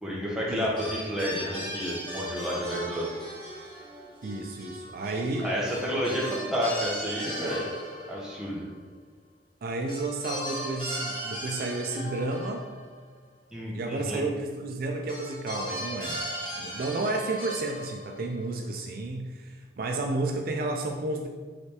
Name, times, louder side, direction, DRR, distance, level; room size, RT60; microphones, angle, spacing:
voice 1, 0.0-3.2 5.4-7.7 8.1-8.6 13.5-14.2, equal, 5° right, -5 dB, 0.8 m, -30 dB
sound 1, 0.8-8.5 9.9-13.3 15.1-18.4, equal, 25° left, 1.4 m, -37 dB
voice 2, 4.2-5.5 9.6-12.6 13.7-16.2 16.6-21.3, right 2 dB, 55° right, 2 dB, 0.4 m, -31 dB
4.9 x 3.3 x 2.9 m, 1.4 s
head